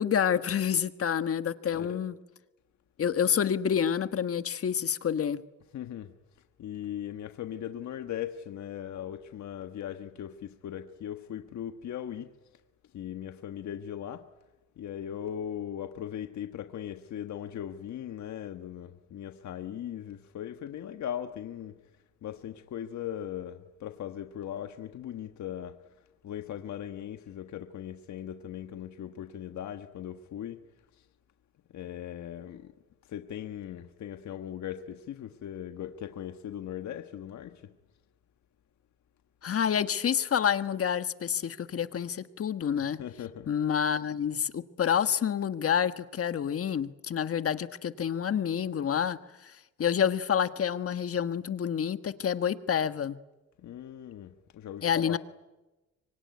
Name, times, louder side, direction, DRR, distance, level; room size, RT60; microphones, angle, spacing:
voice 1, 0.0-2.2 3.0-5.4 39.4-43.0 43.5-49.2 49.4-49.5 49.8-53.2 54.8-55.2, left 8 dB, 50° left, 1.4 m, -28 dB
voice 2, 1.7-2.0 5.7-6.1 6.6-12.3 12.9-14.3 14.8-21.7 22.2-25.8 26.2-30.6 31.7-32.7 33.0-37.7 43.0-43.5 53.6-55.2, left 10 dB, 70° left, 1.5 m, -39 dB
25.0 x 24.0 x 9.6 m
cardioid pair, 90°, 30 cm